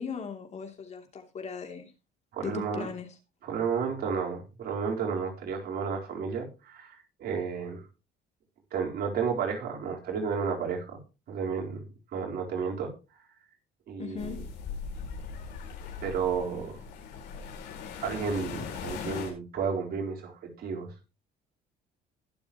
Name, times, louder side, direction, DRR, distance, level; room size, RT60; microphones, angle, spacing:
voice 1, 0.0-1.9 2.4-3.1 14.0-14.4 18.6-18.7, left 6 dB, 40° left, 4 dB, 3.0 m, -38 dB
voice 2, 2.3-2.9 3.4-7.8 8.7-11.0 11.3-12.9 13.9-14.4 16.0-16.7 18.0-20.9, right 6 dB, 65° right, 0 dB, 4.1 m, -32 dB
sound 1, 14.2-19.3, left 6 dB, 80° left, 4.5 m, -39 dB
21.0 x 7.1 x 3.0 m, 0.30 s
cardioid pair, 110°, 17 cm